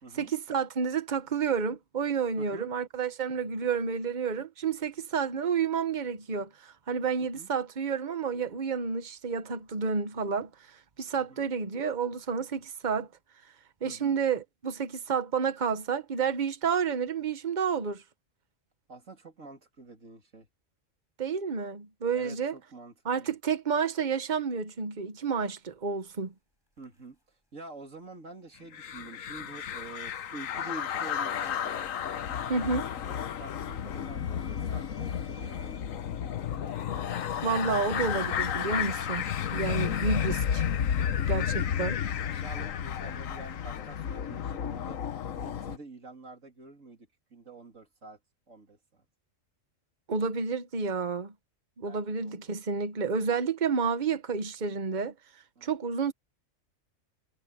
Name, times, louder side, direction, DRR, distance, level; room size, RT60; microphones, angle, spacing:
voice 1, 0.1-10.5 11.0-13.1 13.8-18.0 21.2-22.5 23.0-26.3 32.5-32.8 37.4-39.2 39.5-40.7 41.3-42.0 50.1-51.3 51.8-55.1 55.6-56.1, right 5 dB, 40° right, 1.2 m, -30 dB
voice 2, 2.4-2.7 7.2-7.5 11.2-11.4 13.8-14.2 18.9-20.5 22.1-23.3 26.8-31.7 32.3-32.9 33.4-36.0 42.3-45.0 45.4-48.2 48.5-49.0 51.8-52.5 55.5-55.7, right 3 dB, 75° right, 3.4 m, -47 dB
sound 1, 25.3-25.4 26.7-27.2 29.3-30.3 30.6-35.8, left 2 dB, 15° left, 6.2 m, -58 dB
sound 2, 28.7-45.8, left 8 dB, 85° left, 1.3 m, -32 dB
omnidirectional pair, 1.3 m